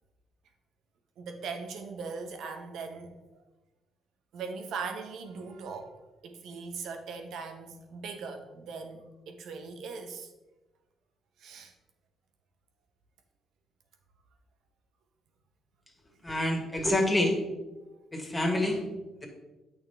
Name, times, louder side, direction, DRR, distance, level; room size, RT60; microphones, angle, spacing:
voice 1, 1.2-3.1 4.3-5.9 6.2-10.3 11.4-11.7, right 5 dB, 80° right, 6 dB, 1.1 m, -40 dB
voice 2, 16.2-17.4 18.1-18.8, left 1 dB, 10° left, 1 dB, 2.0 m, -27 dB
8.8 x 6.3 x 3.5 m, 1.1 s
cardioid pair, 90°, 0 cm